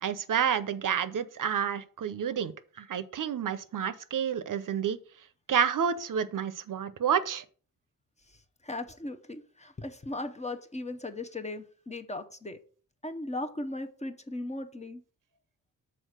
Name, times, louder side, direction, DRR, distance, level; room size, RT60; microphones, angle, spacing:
voice 1, 0.0-2.5 2.8-5.0 5.5-7.4, right 8 dB, 60° right, 14 dB, 0.6 m, -29 dB
voice 2, 8.6-12.6 13.0-15.0, left 2 dB, 20° left, 8 dB, 0.7 m, -37 dB
6.4 x 4.3 x 6.4 m, 0.42 s
wide cardioid pair, 120°, 36 cm